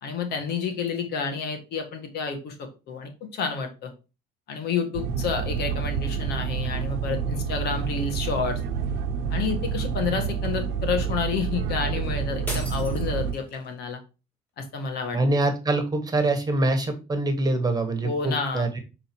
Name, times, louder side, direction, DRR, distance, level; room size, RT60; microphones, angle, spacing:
voice 1, 0.0-3.9 4.5-8.6 9.3-14.0 14.6-15.2 18.0-18.7, left 5 dB, 70° left, 5 dB, 1.8 m, -29 dB
sound 1, 4.9-13.3, right 6 dB, 85° right, 0.9 m, -28 dB
sound 2, 12.5-13.7, equal, 10° left, 3.2 m, -37 dB
voice 2, 15.1-18.8, right 2 dB, 20° right, 6 dB, 1.5 m, -24 dB
6.8 x 3.9 x 4.6 m, 0.30 s
cardioid pair, 110°, 17 cm